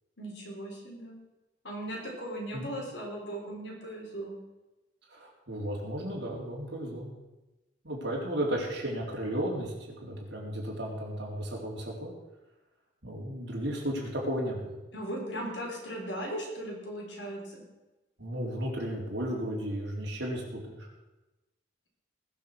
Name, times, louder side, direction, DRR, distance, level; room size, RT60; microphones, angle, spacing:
voice 1, 0.2-1.1 1.6-4.4 14.9-17.6, right 1 dB, 70° left, -1 dB, 4.8 m, -38 dB
voice 2, 5.1-7.2 7.8-9.7 10.0-12.1 13.0-14.8 18.2-20.9, equal, 65° right, -2 dB, 4.0 m, -34 dB
20.5 x 7.0 x 6.3 m, 1.1 s
head